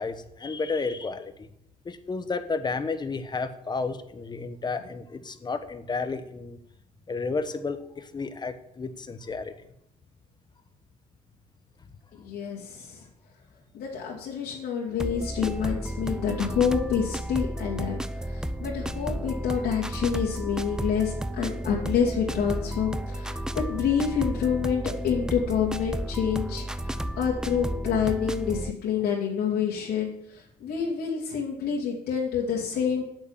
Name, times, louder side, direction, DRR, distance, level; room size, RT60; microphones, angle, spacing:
voice 1, 0.0-1.5 1.8-6.6 7.1-9.5, left 4 dB, 25° left, 10 dB, 1.1 m, -32 dB
voice 2, 12.1-13.0 13.7-30.1 30.6-33.0, left 7 dB, 75° left, -4 dB, 2.7 m, -28 dB
sound 1, 15.0-28.7, right 1 dB, 5° right, 0.5 m, -32 dB
8.4 x 8.1 x 7.4 m, 0.75 s
cardioid pair, 110°, 17 cm